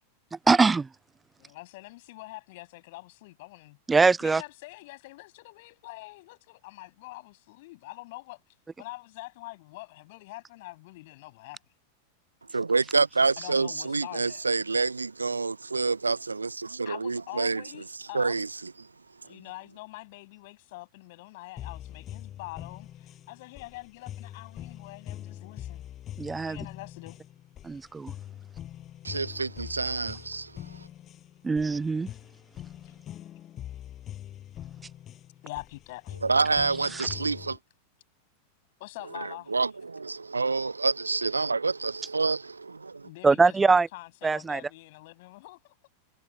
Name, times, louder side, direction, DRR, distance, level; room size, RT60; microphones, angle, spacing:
voice 1, 0.5-0.9 3.9-4.4 26.2-26.6 27.6-28.1 31.4-32.1 36.9-37.1 43.2-43.9 44.2-44.6, right 4 dB, 10° right, 0.3 m, -22 dB
voice 2, 1.4-3.8 4.2-8.4 8.8-11.6 13.4-14.4 16.9-18.4 19.2-25.8 26.5-27.2 32.8-32.9 35.4-36.2 38.8-39.6 43.0-45.6, left 21 dB, 50° left, 7.8 m, -44 dB
voice 3, 12.5-17.6 18.1-18.7 29.0-30.8 36.2-37.6 39.1-43.1, right 4 dB, 80° right, 0.6 m, -28 dB
sound 1, 21.6-37.6, left 11 dB, 30° left, 6.8 m, -43 dB
figure-of-eight pair, 90°, 0 cm